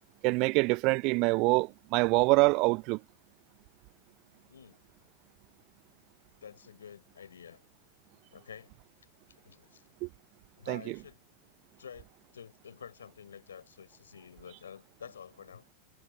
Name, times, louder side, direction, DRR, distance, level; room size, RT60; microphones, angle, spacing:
voice 1, 0.2-3.0 10.0-10.1 10.7-10.9, right 27 dB, 40° right, 0.5 m, -25 dB
voice 2, 4.5-4.8 6.4-7.6 8.3-8.7 9.3-9.9 10.6-11.2 11.8-15.7, left 7 dB, 70° left, 4.8 m, -49 dB
figure-of-eight pair, 90°, 0 cm